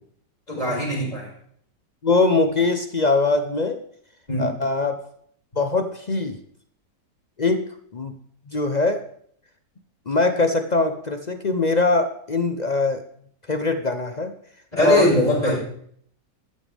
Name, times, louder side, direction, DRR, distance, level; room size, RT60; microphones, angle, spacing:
voice 1, 0.5-1.3 4.3-4.5 14.7-15.6, left 1 dB, 20° left, -4 dB, 5.9 m, -21 dB
voice 2, 2.0-3.8 4.4-5.0 5.6-6.4 7.4-8.1 8.5-9.0 10.1-13.0 13.5-14.3 14.7-15.1 15.5-15.6, left 3 dB, 50° left, 7 dB, 0.4 m, -22 dB
15.0 x 12.5 x 3.5 m, 0.64 s
omnidirectional pair, 1.9 m